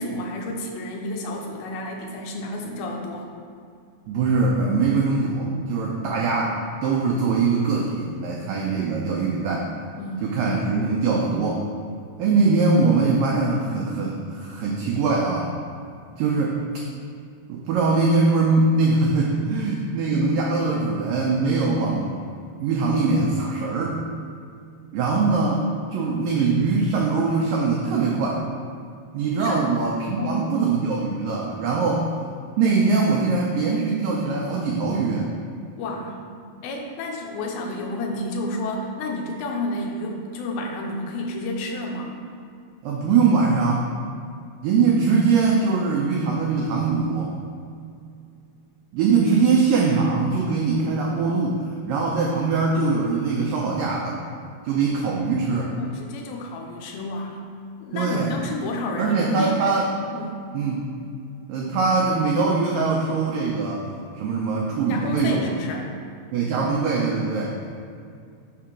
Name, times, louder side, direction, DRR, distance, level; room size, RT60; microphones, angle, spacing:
voice 1, 0.0-3.3 10.0-10.3 29.4-29.7 30.2-30.6 35.8-36.2 36.6-42.2 55.8-57.4 57.8-59.8 60.1-60.4 64.9-65.9, left 1 dB, 80° left, 0 dB, 2.4 m, -30 dB
voice 2, 4.1-9.7 10.2-11.6 12.2-15.5 16.2-16.6 17.5-22.1 22.6-24.0 24.9-25.6 25.9-28.4 29.1-32.1 32.6-35.3 42.8-43.9 44.6-47.3 48.9-54.2 54.6-55.7 57.9-58.4 59.0-59.9 60.5-60.8 61.5-65.5 66.3-67.7, right 4 dB, 90° right, -2 dB, 1.9 m, -22 dB
5.9 x 3.7 x 5.8 m, 2.3 s
omnidirectional pair, 4.6 m